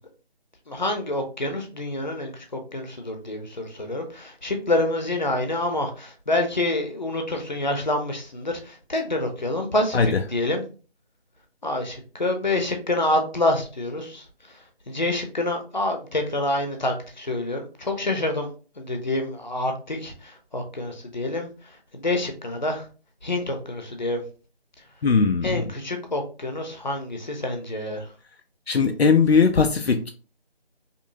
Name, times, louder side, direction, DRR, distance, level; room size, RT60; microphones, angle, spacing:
voice 1, 0.7-10.6 11.6-14.2 14.9-18.5 18.8-21.5 21.9-22.8 23.2-24.2 25.4-28.1, left 2 dB, 45° left, 4 dB, 0.8 m, -27 dB
voice 2, 25.0-25.6 28.7-30.1, left 5 dB, 75° left, 7 dB, 0.6 m, -19 dB
5.2 x 2.1 x 2.6 m, 0.37 s
figure-of-eight pair, 180°, 31 cm